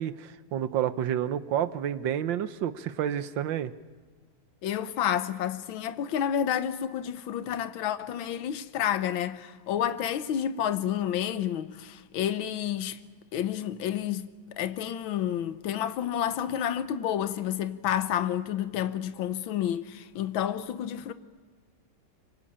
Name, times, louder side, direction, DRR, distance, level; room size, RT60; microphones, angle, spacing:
voice 1, 0.0-3.7, right 10 dB, 70° right, 1.6 m, -29 dB
voice 2, 4.6-13.0 13.3-14.3 14.6-21.1, left 10 dB, 80° left, 1.7 m, -30 dB
25.5 x 24.5 x 8.7 m
omnidirectional pair, 2.2 m